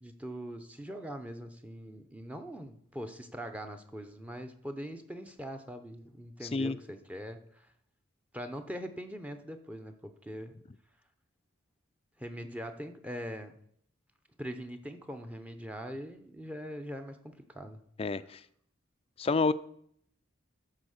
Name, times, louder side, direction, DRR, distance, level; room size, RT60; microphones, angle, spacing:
voice 1, 0.0-7.7 8.3-10.5 12.2-13.5 14.4-17.8, equal, 5° right, 6 dB, 0.7 m, -42 dB
voice 2, 18.0-18.4 19.2-19.5, left 3 dB, 30° left, 14 dB, 0.3 m, -28 dB
13.0 x 4.4 x 6.5 m, 0.68 s
head